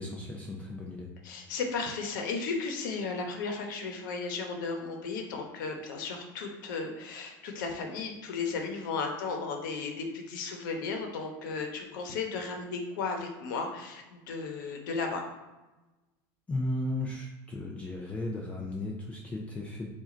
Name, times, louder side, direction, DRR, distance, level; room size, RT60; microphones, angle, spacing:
voice 1, 0.0-1.1 16.5-19.9, left 1 dB, 15° left, -1 dB, 0.4 m, -35 dB
voice 2, 1.2-15.3, left 4 dB, 80° left, 3 dB, 0.9 m, -35 dB
4.8 x 2.5 x 4.3 m, 1.1 s
supercardioid pair, 160°, 10 cm